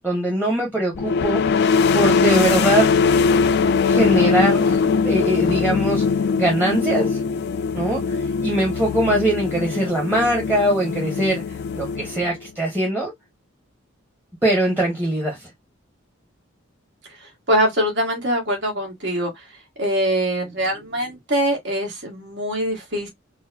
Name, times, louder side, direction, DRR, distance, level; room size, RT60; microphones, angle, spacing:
voice 1, 0.0-1.4 1.9-3.0 3.8-6.0 6.4-7.2 7.7-11.4 11.7-13.1 14.4-15.5, right 1 dB, 10° right, 0.9 m, -22 dB
sound 1, 1.0-12.5, left 5 dB, 55° left, 0.3 m, -21 dB
voice 2, 17.5-19.3 19.8-23.1, equal, 60° right, 1.5 m, -23 dB
3.9 x 2.0 x 2.6 m
head